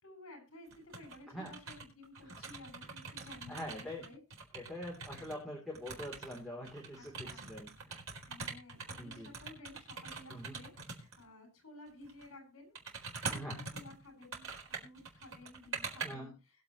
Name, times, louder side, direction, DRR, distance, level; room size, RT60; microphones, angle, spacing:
voice 1, 0.0-4.2 7.0-7.5 8.3-13.4 13.7-16.3, left 2 dB, 70° left, 4 dB, 6.9 m, -54 dB
sound 1, 0.7-1.2 1.4-5.4 5.7-11.2 12.0-12.3 12.7-16.1, right 4 dB, 70° right, 4.3 m, -44 dB
voice 2, 3.5-4.0 4.5-8.0 9.0-9.3 10.3-10.6 13.3-13.6 16.0-16.3, equal, ahead, -3 dB, 3.3 m, -44 dB
21.5 x 7.9 x 3.2 m, 0.28 s
head